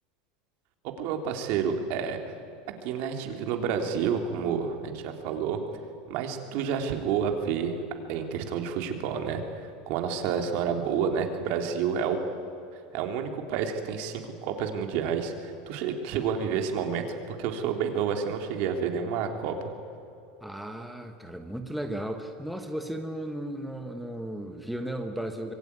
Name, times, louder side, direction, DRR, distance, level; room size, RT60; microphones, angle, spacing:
voice 1, 1.0-2.2 2.8-5.6 6.1-7.7 8.1-9.4 9.9-12.2 12.9-19.6, right 7 dB, 55° right, 5 dB, 3.2 m, -29 dB
voice 2, 20.4-25.5, right 1 dB, ahead, 4 dB, 1.3 m, -35 dB
25.5 x 22.5 x 9.7 m, 2.8 s
supercardioid pair, 150°, 4 cm